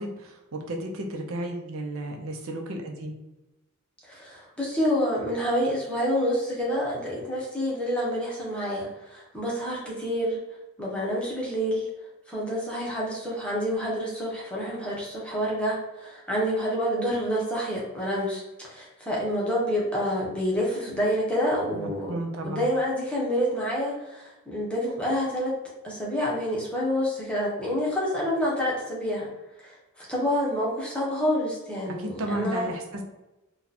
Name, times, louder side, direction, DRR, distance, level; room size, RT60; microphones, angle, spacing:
voice 1, 0.0-3.1 21.8-22.7 31.9-33.0, right 1 dB, 75° right, 2 dB, 0.6 m, -33 dB
voice 2, 4.1-10.4 10.8-11.9 12.3-22.1 22.4-25.5 25.8-29.3 29.6-32.7, equal, 5° left, -5 dB, 0.9 m, -28 dB
2.8 x 2.3 x 4.0 m, 0.99 s
head